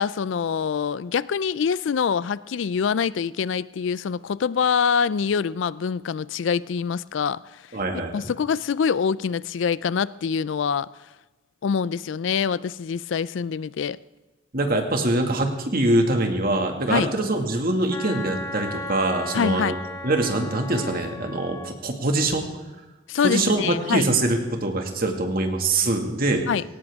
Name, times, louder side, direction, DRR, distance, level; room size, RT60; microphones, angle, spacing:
voice 1, 0.0-7.6 8.1-10.9 11.6-14.0 16.9-17.1 19.3-19.8 23.1-24.1 26.5-26.6, left 6 dB, 70° left, 0.4 m, -25 dB
voice 2, 7.7-8.1 14.5-19.8 20.0-22.5 23.2-26.5, right 2 dB, 50° right, 2.0 m, -23 dB
Wind instrument woodwind instrument, 17.9-21.8, left 2 dB, 15° left, 1.3 m, -35 dB
18.0 x 17.5 x 3.6 m
head